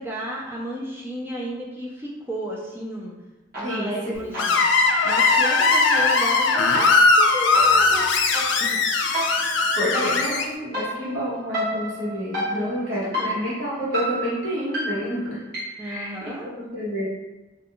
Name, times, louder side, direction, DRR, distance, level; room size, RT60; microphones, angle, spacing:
voice 1, 0.0-3.1 3.6-4.6 5.0-8.1 8.6-8.8 12.5-13.4 15.8-16.5, equal, 10° right, -3 dB, 0.3 m, -33 dB
sound 1, 3.5-4.0 4.3-15.9, right 1 dB, 45° right, 0.9 m, -32 dB
voice 2, 3.6-4.3 9.8-15.4 15.8-16.1 16.4-17.1, equal, 80° right, -7 dB, 1.1 m, -29 dB
Screech, 4.4-10.4, left 3 dB, 70° left, 0.3 m, -19 dB
2.4 x 2.3 x 2.9 m, 1.1 s
head